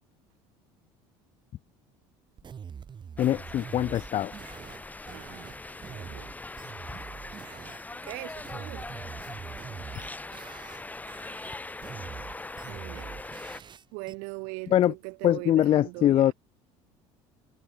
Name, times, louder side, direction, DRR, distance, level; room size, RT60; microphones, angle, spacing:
sound 1, 2.4-7.8 8.1-10.8 11.1-14.1, right 7 dB, 35° right, 4.1 m, -44 dB
voice 1, 3.2-4.3 14.7-14.9 15.2-16.3, left 12 dB, 40° left, 0.4 m, -23 dB
sound 2, 3.2-13.6, left 2 dB, 10° left, 4.4 m, -41 dB
voice 2, 5.1-6.3 8.0-8.9 12.7-13.2 13.6-16.3, right 36 dB, 80° right, 7.1 m, -41 dB
supercardioid pair, 100°, 13 cm